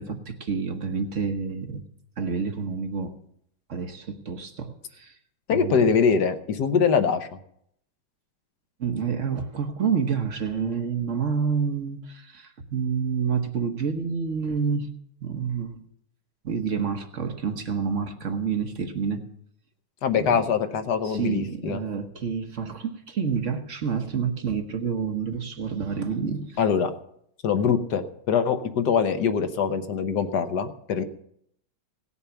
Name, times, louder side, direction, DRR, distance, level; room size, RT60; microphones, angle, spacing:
voice 1, 0.0-1.8 2.2-3.2 3.7-5.2 5.5-5.9 8.8-14.9 15.2-15.8 16.4-19.3 20.1-20.4 21.0-26.6, right 6 dB, 45° right, 1.2 m, -28 dB
voice 2, 5.5-7.4 20.0-21.8 26.6-26.9 27.4-31.0, left 6 dB, 60° left, 1.3 m, -23 dB
18.0 x 7.0 x 7.0 m
omnidirectional pair, 2.3 m